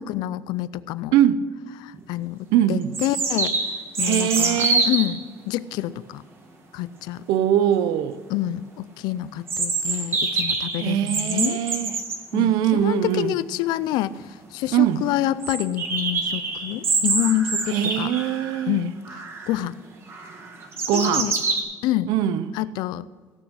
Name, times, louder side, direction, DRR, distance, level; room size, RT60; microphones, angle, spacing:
voice 1, 0.0-1.2 1.8-3.6 4.0-6.2 6.7-7.2 8.3-11.6 12.3-18.1 18.7-18.9 19.5-19.8 20.9-21.3 21.8-22.1 22.5-23.1, left 13 dB, 80° left, 0.4 m, -27 dB
sound 1, 1.9-2.0 2.9-5.1 9.5-12.2 13.9-14.0 14.2-14.3 14.7-14.8 15.4-18.6 19.1-19.6 20.1-21.6, right 3 dB, 35° right, 1.5 m, -26 dB
voice 2, 2.5-2.9 4.0-4.9 7.3-8.2 10.8-11.9 12.3-13.3 14.7-15.0 17.7-18.8 20.9-21.3 22.1-22.6, right 10 dB, 85° right, 0.6 m, -22 dB
17.0 x 6.3 x 6.2 m
cardioid pair, 155°, 7 cm